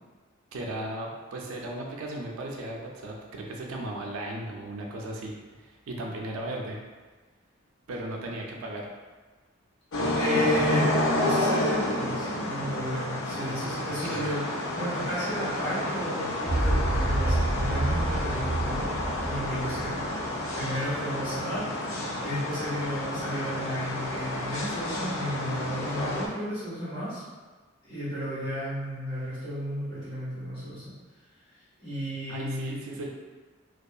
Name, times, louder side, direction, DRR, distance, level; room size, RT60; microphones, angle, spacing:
voice 1, 0.5-6.8 7.9-8.9 13.4-14.3 32.3-33.1, right 1 dB, 80° right, 0 dB, 0.4 m, -36 dB
sound 1, 9.9-26.3, left 1 dB, 70° left, 0.4 m, -30 dB
voice 2, 10.2-10.9 11.2-14.4 14.7-27.2 27.8-30.9 31.8-32.8, equal, 25° left, -12 dB, 1.3 m, -33 dB
sound 2, 16.5-20.8, right 1 dB, 45° right, 0.9 m, -28 dB
2.7 x 2.3 x 2.3 m, 1.3 s
head